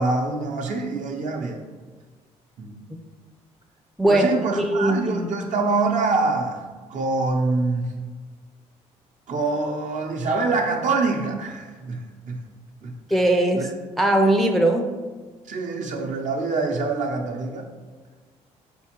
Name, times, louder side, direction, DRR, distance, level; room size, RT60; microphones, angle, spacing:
voice 1, 0.0-1.6 2.6-2.7 4.1-6.6 6.9-7.9 9.3-12.4 12.8-12.9 13.5-13.7 15.5-17.6, right 3 dB, 55° right, 2 dB, 0.7 m, -25 dB
voice 2, 4.6-5.2 13.1-13.7 14.0-14.9, right 1 dB, ahead, 2 dB, 0.4 m, -19 dB
4.2 x 3.6 x 3.0 m, 1.4 s
supercardioid pair, 60°, 15 cm